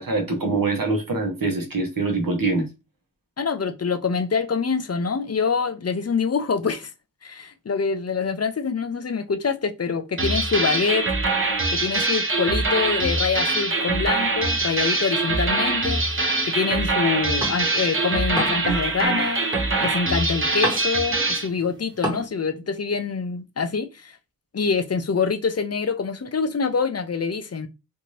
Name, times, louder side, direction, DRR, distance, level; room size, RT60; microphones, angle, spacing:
voice 1, 0.0-2.7, right 3 dB, 75° right, 0.9 m, -24 dB
voice 2, 3.4-6.9 7.2-11.1 11.7-16.0 16.5-19.5 19.8-24.2 24.5-27.7, left 5 dB, 45° left, 0.5 m, -25 dB
sound 1, 10.2-21.5, right 2 dB, 35° right, 0.7 m, -23 dB
sound 2, 15.2-17.9 18.2-22.3, right 1 dB, 10° right, 1.0 m, -33 dB
2.6 x 2.6 x 3.1 m
wide cardioid pair, 45°, 34 cm